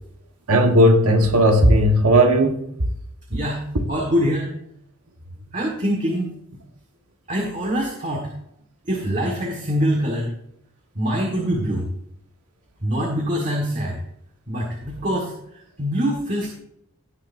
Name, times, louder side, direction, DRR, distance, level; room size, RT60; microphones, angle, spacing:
voice 1, 0.5-2.7 3.3-3.4, equal, 90° right, 1.5 m, -15 dB
voice 2, 3.3-3.6 3.9-4.5 5.5-6.3 7.3-8.3 8.9-10.3 10.9-11.9 12.8-14.0 14.5-15.3 15.8-16.5, equal, 35° right, 1.7 m, -24 dB
17.5 x 6.6 x 2.7 m
head